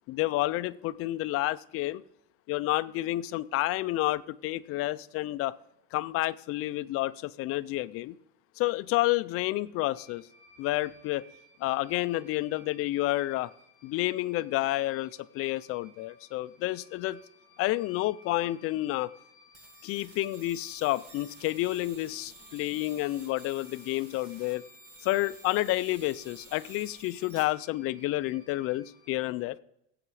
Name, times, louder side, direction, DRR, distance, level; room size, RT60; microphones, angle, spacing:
voice 1, 0.1-2.0 2.5-5.5 5.9-8.1 8.6-10.2 10.6-11.2 11.6-13.5 13.8-17.2 17.6-19.1 19.8-24.6 25.0-29.6, left 17 dB, 45° left, 14 dB, 0.4 m, -30 dB
sound 1, 9.9-29.1, left 2 dB, 30° left, 4.0 m, -59 dB
sound 2, 19.5-27.4, right 2 dB, 45° right, 2.6 m, -52 dB
17.0 x 7.9 x 4.8 m, 0.80 s
cardioid pair, 180°, 34 cm